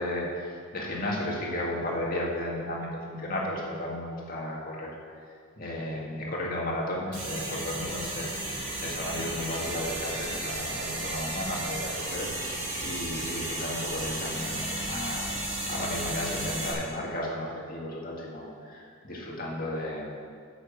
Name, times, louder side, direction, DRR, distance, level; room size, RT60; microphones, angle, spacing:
voice 1, 0.0-4.9 5.6-12.3 12.8-20.1, left 1 dB, 45° left, -3 dB, 2.0 m, -34 dB
sound 1, 7.1-16.7, right 1 dB, 35° right, 3.1 m, -34 dB
10.5 x 6.2 x 7.2 m, 2.2 s
head